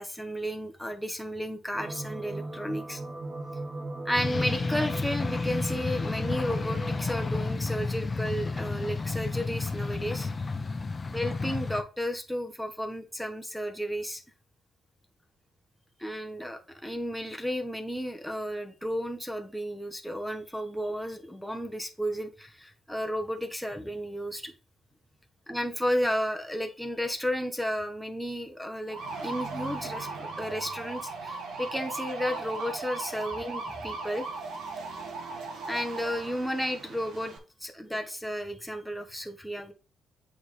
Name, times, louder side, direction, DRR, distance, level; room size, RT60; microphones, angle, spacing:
voice 1, 0.0-3.0 4.0-10.3 11.1-14.2 16.0-24.5 25.5-34.3 35.7-39.7, equal, ahead, 4 dB, 1.1 m, -33 dB
sound 1, 1.7-7.4, right 2 dB, 60° right, 2.1 m, -38 dB
sound 2, 4.1-11.8, left 3 dB, 30° left, 0.9 m, -31 dB
sound 3, 28.9-37.4, right 3 dB, 80° right, 1.9 m, -38 dB
8.0 x 4.9 x 3.3 m, 0.34 s
cardioid pair, 90°, 0 cm